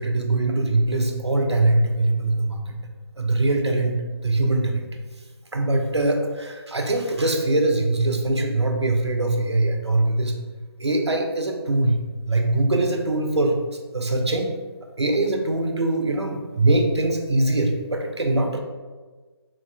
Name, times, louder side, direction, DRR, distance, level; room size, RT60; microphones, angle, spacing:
voice 1, 0.0-2.8 3.2-4.0 4.2-4.8 5.5-10.3 10.8-12.0 12.3-13.6 13.9-14.5 15.0-18.6, right 2 dB, 85° right, 3 dB, 0.5 m, -22 dB
3.9 x 2.3 x 2.2 m, 1.3 s
figure-of-eight pair, 145°, 14 cm